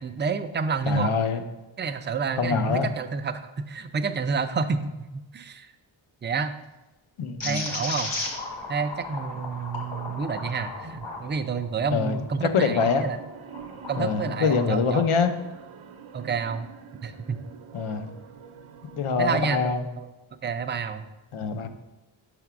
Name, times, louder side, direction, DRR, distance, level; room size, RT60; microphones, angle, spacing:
voice 1, 0.0-1.1 1.8-5.7 6.2-6.6 7.4-8.1 8.7-13.2 13.9-15.0 16.1-16.7 17.0-17.4 19.2-20.1 20.4-21.0, right 5 dB, 25° right, 9 dB, 0.3 m, -29 dB
voice 2, 0.9-1.4 2.4-2.9 7.2-7.6 11.9-12.2 12.4-13.1 14.0-15.3 17.7-18.1 19.0-19.8 21.3-21.7, left 5 dB, 90° left, 8 dB, 0.7 m, -24 dB
sound 1, 7.4-13.0 13.5-14.7, left 2 dB, 70° left, 1.5 m, -36 dB
sound 2, 13.0-19.0, right 7 dB, 80° right, 0.7 m, -45 dB
5.7 x 3.5 x 5.9 m, 1.1 s
wide cardioid pair, 120°, 48 cm